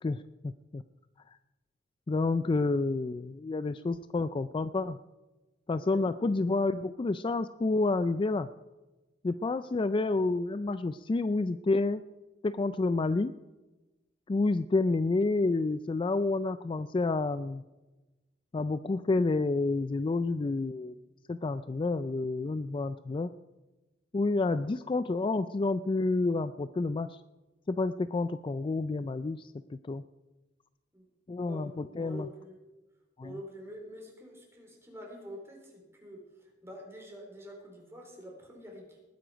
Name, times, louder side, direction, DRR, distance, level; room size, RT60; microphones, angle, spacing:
voice 1, 0.0-0.8 2.1-5.0 5.7-8.5 9.2-12.0 12.4-13.3 14.3-17.6 18.5-21.0 21.3-23.3 24.1-27.2 27.7-30.0 31.3-32.3 33.2-33.3, left 3 dB, 30° left, 13 dB, 0.3 m, -29 dB
voice 2, 31.3-32.6 33.2-39.0, equal, 15° right, 0 dB, 4.3 m, -47 dB
20.0 x 9.6 x 5.1 m, 1.1 s
head